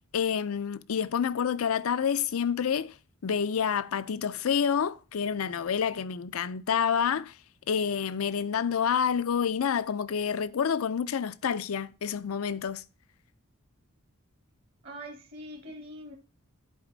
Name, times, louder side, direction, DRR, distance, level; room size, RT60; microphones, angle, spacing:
voice 1, 0.1-3.0 3.2-7.4 7.7-12.8, left 7 dB, 80° left, 0.5 m, -28 dB
voice 2, 14.8-16.2, equal, 50° right, 1.2 m, -43 dB
10.5 x 4.4 x 3.9 m
head